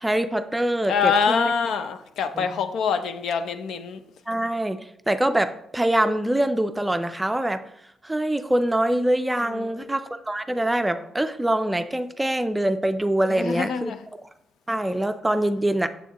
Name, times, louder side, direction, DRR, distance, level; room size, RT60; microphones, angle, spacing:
voice 1, 0.0-1.5 2.4-2.5 4.3-4.8 5.1-7.6 8.0-13.9 14.7-15.9, right 1 dB, 10° right, 10 dB, 0.4 m, -24 dB
voice 2, 0.9-4.0 9.4-9.9 13.3-14.0, left 6 dB, 75° left, 9 dB, 0.6 m, -25 dB
7.0 x 7.0 x 2.9 m, 0.75 s
cardioid pair, 90°, 0 cm